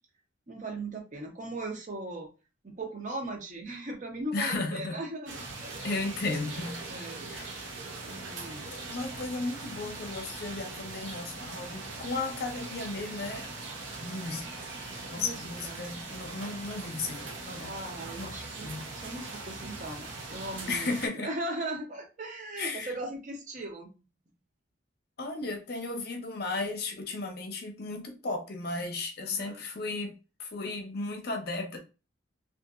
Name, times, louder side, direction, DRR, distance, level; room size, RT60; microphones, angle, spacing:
voice 1, 0.5-2.3 2.6-5.8 6.9-7.3 8.0-8.7 15.1-15.9 17.6-23.9 29.2-29.6, right 2 dB, 40° right, 0.6 m, -39 dB
voice 2, 4.3-5.0 5.8-6.8 7.3-7.6 8.7-13.5 14.0-14.5 15.1-17.7 18.2-18.3 18.6-18.9 20.7-21.3 22.6-22.9 25.2-30.1 30.4-31.8, left 3 dB, 50° left, 0.6 m, -35 dB
sound 1, 5.3-21.1, right 3 dB, 75° right, 0.8 m, -41 dB
2.8 x 2.5 x 2.4 m
head